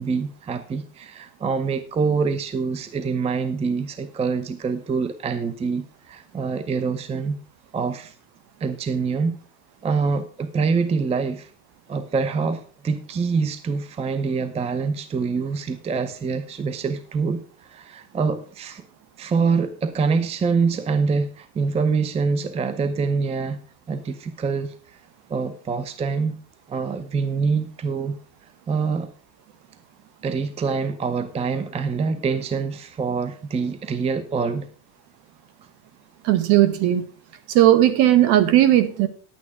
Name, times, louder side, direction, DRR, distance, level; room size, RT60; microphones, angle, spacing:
voice 1, 0.0-7.4 7.7-8.1 8.6-9.4 9.8-11.5 11.9-18.8 19.2-23.6 23.9-24.7 25.3-26.4 26.7-28.1 28.7-29.1 30.2-34.7, right 5 dB, 15° right, 12 dB, 0.6 m, -25 dB
voice 2, 36.2-37.0 37.5-39.1, right 13 dB, 55° right, 13 dB, 1.5 m, -16 dB
10.5 x 8.7 x 4.7 m, 0.41 s
supercardioid pair, 130°, 47 cm